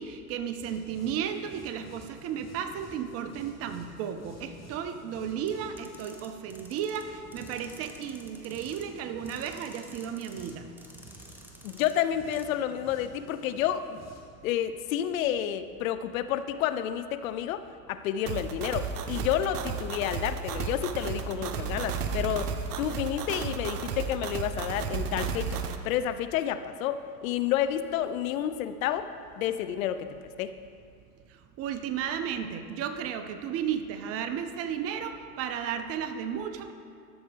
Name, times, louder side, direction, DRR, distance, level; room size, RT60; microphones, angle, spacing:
voice 1, 0.0-10.7 31.6-36.7, right 8 dB, 30° right, 8 dB, 0.5 m, -34 dB
sound 1, 0.6-14.2, left 1 dB, 35° left, 2.3 m, -51 dB
sound 2, 5.5-7.0 7.3-8.8 9.3-10.5 10.8-11.9 12.3-12.5, right 1 dB, 5° right, 0.8 m, -52 dB
voice 2, 11.6-14.0 14.4-17.6 17.9-22.5 22.8-25.6 25.8-29.1 29.4-30.1 30.4-30.5, left 10 dB, 60° left, 11 dB, 0.6 m, -30 dB
sound 3, 18.3-25.8, right 6 dB, 70° right, 0.8 m, -33 dB
12.5 x 7.0 x 3.4 m, 2.3 s
hypercardioid pair, 85°, 47 cm